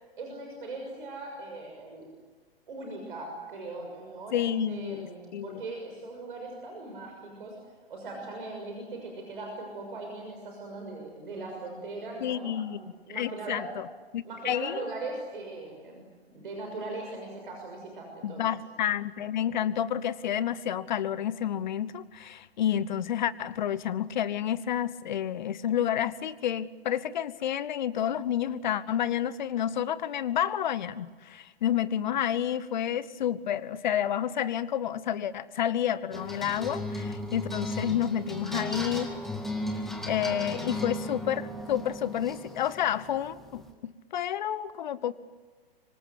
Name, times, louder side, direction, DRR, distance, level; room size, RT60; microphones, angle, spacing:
voice 1, 0.2-2.1 2.7-7.5 7.9-13.7 14.2-18.5 40.3-40.4, right 2 dB, 55° right, 2 dB, 6.4 m, -40 dB
voice 2, 4.3-5.6 12.2-12.8 13.1-13.9 14.1-14.8 18.2-39.1 40.1-45.1, left 10 dB, 45° left, 18 dB, 1.1 m, -30 dB
sound 1, 36.1-43.7, left 1 dB, ahead, 2.1 m, -36 dB
26.0 x 24.5 x 8.2 m, 1.3 s
figure-of-eight pair, 120°, 31 cm